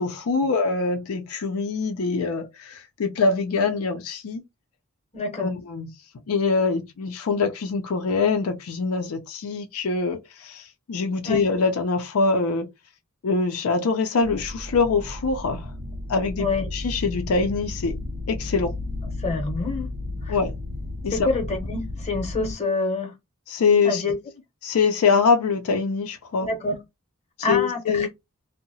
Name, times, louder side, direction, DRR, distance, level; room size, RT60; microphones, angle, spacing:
voice 1, 0.0-4.4 5.4-5.9 6.3-12.7 13.2-15.7 16.1-16.5 16.7-18.7 20.3-20.5 21.0-21.3 23.5-24.0 24.6-26.5 27.5-28.1, left 4 dB, 75° left, 0.4 m, -24 dB
voice 2, 5.1-5.5 11.2-11.4 16.4-16.7 19.2-19.9 20.2-20.4 21.1-23.1 23.8-24.2 26.4-26.8 27.4-28.1, left 3 dB, 30° left, 0.8 m, -27 dB
sound 1, 14.2-22.5, left 2 dB, 90° right, 0.7 m, -33 dB
2.7 x 2.0 x 2.7 m
head